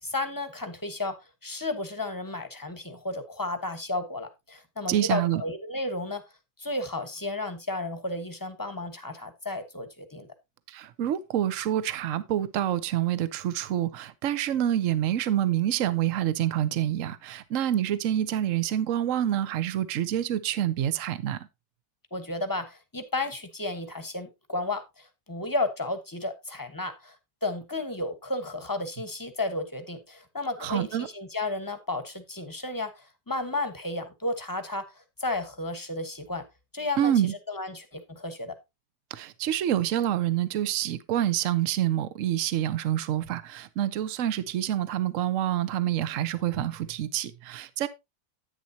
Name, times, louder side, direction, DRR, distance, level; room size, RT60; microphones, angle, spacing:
voice 1, 0.0-1.1 1.4-6.2 6.6-10.3 22.1-27.2 27.4-34.8 35.2-36.4 36.7-37.1 37.5-38.5, left 2 dB, 15° left, 1.0 m, -33 dB
voice 2, 4.9-5.4 10.7-21.5 30.6-31.1 37.0-37.3 39.1-47.9, right 11 dB, 55° right, 1.0 m, -27 dB
10.5 x 9.0 x 2.8 m
omnidirectional pair, 1.8 m